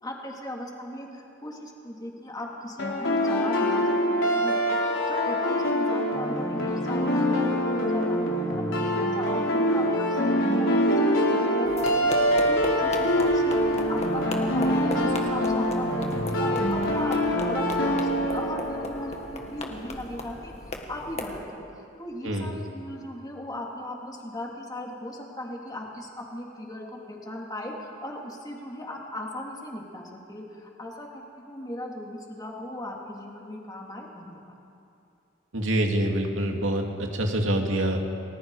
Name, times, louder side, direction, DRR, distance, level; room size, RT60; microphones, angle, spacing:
voice 1, 0.0-4.0 4.2-8.6 8.9-34.5, left 1 dB, 20° left, -1 dB, 2.9 m, -37 dB
sound 1, 2.8-19.7, equal, 85° left, 3.8 m, -24 dB
sound 2, 11.7-21.4, left 2 dB, 35° left, 1.9 m, -38 dB
voice 2, 22.2-22.6 35.5-38.0, right 1 dB, 75° right, 2 dB, 2.5 m, -26 dB
30.0 x 20.0 x 4.9 m, 2.6 s
head